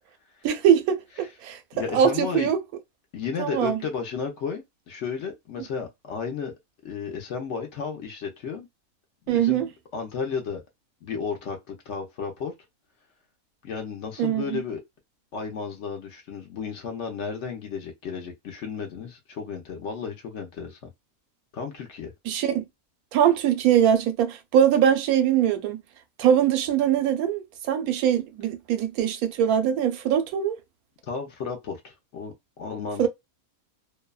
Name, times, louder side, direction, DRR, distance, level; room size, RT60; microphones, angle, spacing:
voice 1, 0.4-1.6 1.9-2.6 3.4-3.8 9.3-9.7 14.2-14.6 22.3-22.6 23.1-25.8 26.2-30.5 33.0-33.1, right 9 dB, 90° right, 1.1 m, -22 dB
voice 2, 1.7-2.5 3.1-6.5 6.8-8.7 9.3-9.6 9.9-10.6 11.0-12.5 13.6-14.8 15.3-20.8 21.5-22.1 31.1-33.1, left 6 dB, 65° left, 0.8 m, -33 dB
2.6 x 2.1 x 2.2 m
omnidirectional pair, 1.5 m